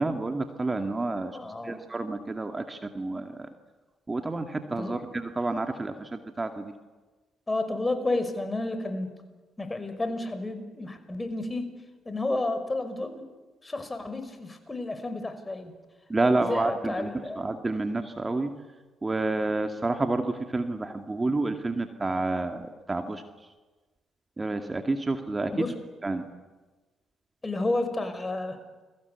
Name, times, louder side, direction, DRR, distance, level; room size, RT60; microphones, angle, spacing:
voice 1, 0.0-1.4 1.6-3.5 4.1-6.7 16.1-18.5 19.0-23.2 24.4-25.7 26.0-26.2, right 2 dB, 25° right, 6 dB, 2.3 m, -29 dB
voice 2, 1.3-1.8 4.8-5.0 7.5-9.1 9.6-11.7 12.1-13.2 13.6-15.7 16.2-17.4 25.5-25.8 27.4-28.6, left 2 dB, 25° left, 9 dB, 5.7 m, -31 dB
29.0 x 23.0 x 8.4 m, 1.3 s
hypercardioid pair, 45°, 0 cm